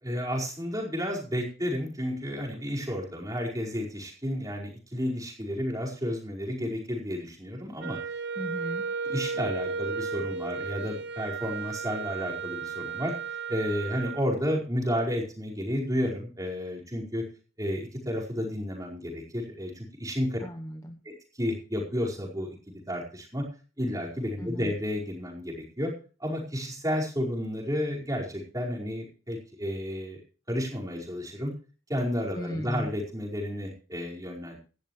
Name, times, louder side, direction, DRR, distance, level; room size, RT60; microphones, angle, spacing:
voice 1, 0.0-8.0 9.0-13.1 13.5-17.2 17.6-20.4 21.0-23.4 23.8-25.9 26.2-30.2 30.5-31.5 31.9-34.6, equal, 15° right, -1 dB, 4.9 m, -31 dB
Wind instrument woodwind instrument, 7.8-14.3, right 5 dB, 50° right, 1.1 m, -34 dB
voice 2, 8.4-8.9 20.4-21.0 24.4-24.7 32.4-32.9, equal, 15° left, 5 dB, 1.0 m, -36 dB
17.5 x 13.5 x 3.2 m, 0.37 s
head